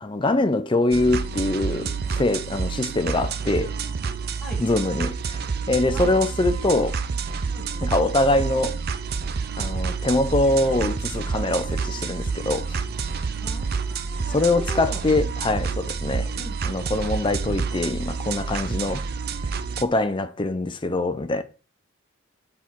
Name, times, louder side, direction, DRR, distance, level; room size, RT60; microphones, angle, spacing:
voice 1, 0.0-3.7 4.6-5.4 5.7-7.0 7.8-8.8 9.6-12.8 14.3-16.3 16.6-19.0 19.8-21.4, left 2 dB, 25° left, 0.5 m, -23 dB
sound 1, 0.9-19.8, right 5 dB, 50° right, 0.5 m, -28 dB
voice 2, 7.5-7.9 13.4-15.0 16.1-16.6, equal, 5° left, 1.7 m, -40 dB
8.1 x 4.3 x 4.5 m
head